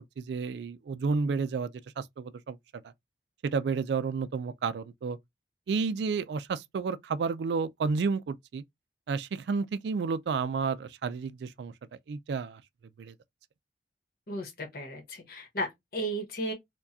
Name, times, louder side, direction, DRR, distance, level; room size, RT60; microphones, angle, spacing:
voice 1, 0.0-1.7 2.0-2.6 3.4-5.2 5.7-8.6 9.1-11.7 12.1-12.6 13.0-13.1, right 5 dB, 70° right, 0.3 m, -31 dB
voice 2, 14.3-16.5, right 1 dB, 55° left, 1.1 m, -35 dB
4.6 x 2.2 x 2.6 m
head